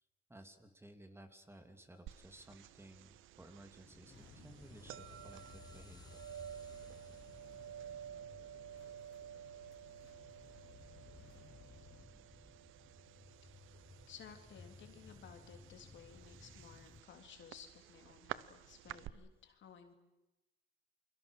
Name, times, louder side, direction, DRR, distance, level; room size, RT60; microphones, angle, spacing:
voice 1, 0.3-6.2, right 1 dB, 10° right, 6 dB, 2.7 m, -57 dB
sound 1, 2.1-19.1, right 11 dB, 85° right, 0.8 m, -52 dB
sound 2, 3.8-17.0, left 4 dB, 20° left, 0.9 m, -60 dB
sound 3, 4.1-12.1, left 11 dB, 90° left, 1.0 m, -62 dB
voice 2, 14.1-19.9, left 7 dB, 70° left, 5 dB, 3.4 m, -56 dB
29.0 x 22.5 x 6.5 m, 0.99 s
cardioid pair, 90°, 20 cm